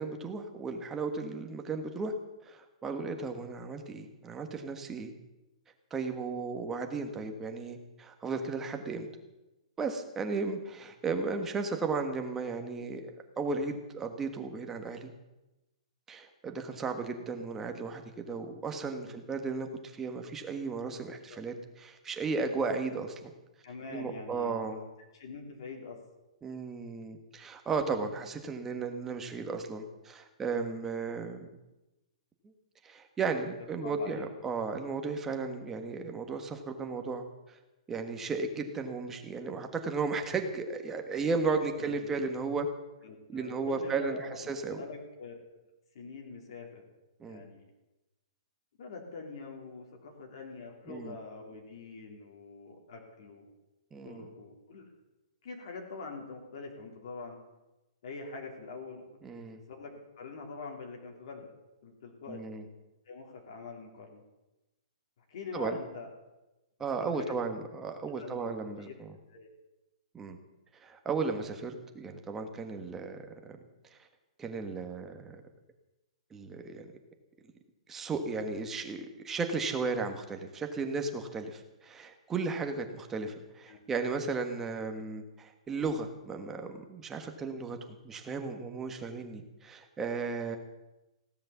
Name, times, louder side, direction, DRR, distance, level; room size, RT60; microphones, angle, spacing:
voice 1, 0.0-2.1 2.4-5.1 5.9-9.1 9.8-13.1 13.4-15.1 16.1-18.0 18.3-23.3 23.9-24.8 26.4-31.5 32.8-37.6 37.9-42.7 43.3-44.8 47.2-47.4 50.9-51.1 53.9-54.3 59.2-59.6 62.3-62.6 65.5-65.8 66.8-69.1 70.1-70.4 70.8-73.3 73.9-74.0 74.4-75.4 76.3-76.9 77.9-90.6, right 4 dB, 10° right, 5 dB, 1.4 m, -35 dB
voice 2, 23.6-24.9 25.1-26.0 33.8-34.3 41.8-42.1 43.0-44.4 44.7-45.5 46.0-46.8 47.3-47.6 48.8-53.5 54.0-54.9 55.4-57.4 58.0-59.0 59.7-61.5 61.8-62.4 63.1-64.2 65.3-66.1 67.0-67.4 68.2-68.5 68.8-68.9 69.3-69.5 83.7-83.8, left 3 dB, 50° left, 1 dB, 3.5 m, -44 dB
16.5 x 12.0 x 7.2 m, 1.0 s
hypercardioid pair, 170°, 4 cm